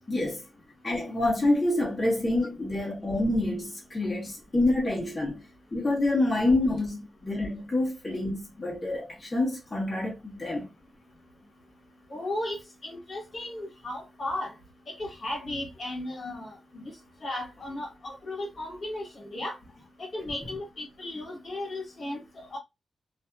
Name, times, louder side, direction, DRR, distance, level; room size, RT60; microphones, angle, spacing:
voice 1, 0.1-0.4 0.8-5.4 5.7-10.7, left 2 dB, 25° left, 0.9 m, -27 dB
voice 2, 12.1-14.5 15.0-16.9 17.2-19.6 20.0-22.2 22.5-22.6, left 1 dB, 55° left, 1.1 m, -35 dB
2.5 x 2.5 x 2.2 m
wide cardioid pair, 110°, 0 cm